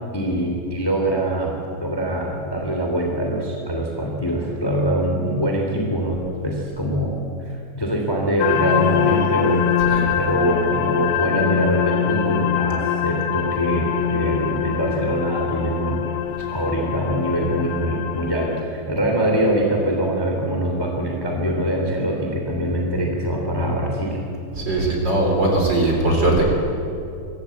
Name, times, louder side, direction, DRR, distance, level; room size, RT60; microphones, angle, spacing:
voice 1, 0.1-9.6 10.2-16.0 16.5-24.2, right 1 dB, 5° left, 0 dB, 2.3 m, -23 dB
sound 1, 8.4-18.6, left 8 dB, 85° left, 2.9 m, -23 dB
voice 2, 24.5-26.5, right 2 dB, 30° right, 0 dB, 4.1 m, -19 dB
24.0 x 15.5 x 8.3 m, 2.6 s
omnidirectional pair, 4.3 m